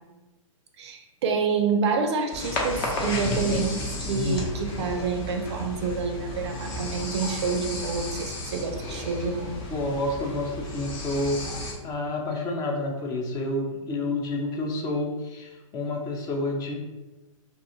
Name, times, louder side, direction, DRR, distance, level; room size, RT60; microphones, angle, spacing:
voice 1, 0.8-9.6, right 5 dB, 55° right, 5 dB, 0.4 m, -28 dB
sound 1, 2.3-11.7, left 1 dB, 40° left, 0.8 m, -32 dB
voice 2, 9.7-16.7, left 2 dB, 20° left, 1 dB, 0.4 m, -29 dB
2.5 x 2.3 x 2.7 m, 1.1 s
hypercardioid pair, 130°, 17 cm